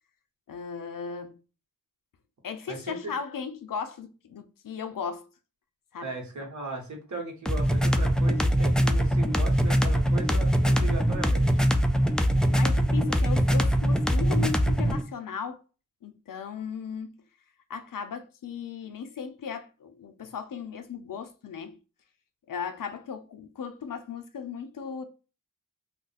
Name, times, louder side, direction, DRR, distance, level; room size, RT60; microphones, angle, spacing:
voice 1, 0.5-1.4 2.4-5.3 5.9-6.1 10.8-11.0 12.5-15.6 16.0-17.2 17.7-21.8 22.5-25.0, left 6 dB, 80° left, 0.5 m, -37 dB
voice 2, 2.7-3.0 6.0-11.6, right 3 dB, 60° right, 1.1 m, -37 dB
sound 1, 7.5-15.0, equal, ahead, 0.3 m, -23 dB
2.5 x 2.1 x 3.9 m
wide cardioid pair, 70°, 32 cm